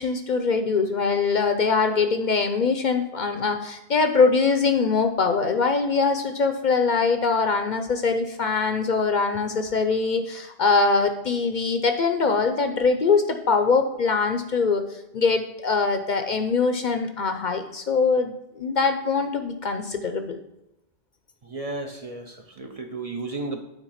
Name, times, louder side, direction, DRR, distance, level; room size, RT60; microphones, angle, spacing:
voice 1, 0.0-14.8 15.1-20.4, left 4 dB, 55° left, 7 dB, 0.7 m, -23 dB
voice 2, 21.4-23.6, right 2 dB, 40° right, 4 dB, 0.7 m, -33 dB
9.0 x 3.8 x 5.6 m, 0.90 s
omnidirectional pair, 1.1 m